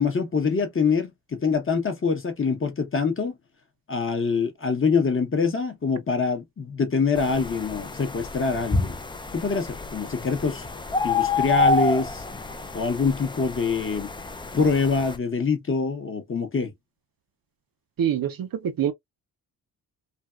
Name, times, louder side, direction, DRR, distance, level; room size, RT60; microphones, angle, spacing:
voice 1, 0.0-3.3 3.9-8.9 9.3-10.6 11.0-12.2 12.7-14.1 14.5-16.7, left 5 dB, 30° left, 0.8 m, -24 dB
sound 1, 7.2-15.2, left 3 dB, 15° left, 0.3 m, -28 dB
voice 2, 18.0-18.9, right 9 dB, 55° right, 0.5 m, -25 dB
3.4 x 2.3 x 2.3 m
wide cardioid pair, 110°, 42 cm